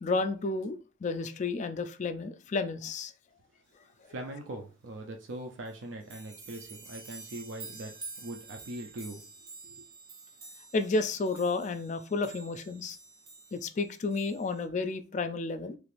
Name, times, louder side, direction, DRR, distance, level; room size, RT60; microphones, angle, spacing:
voice 1, 0.0-3.1 10.7-13.0 13.5-15.8, left 3 dB, 35° left, 10 dB, 0.3 m, -31 dB
voice 2, 4.1-9.2 9.6-9.9, right 1 dB, 70° right, 3 dB, 0.5 m, -41 dB
sound 1, 5.3-5.4 5.7-14.7, right 4 dB, 50° right, 1.0 m, -49 dB
3.2 x 3.1 x 2.5 m, 0.35 s
head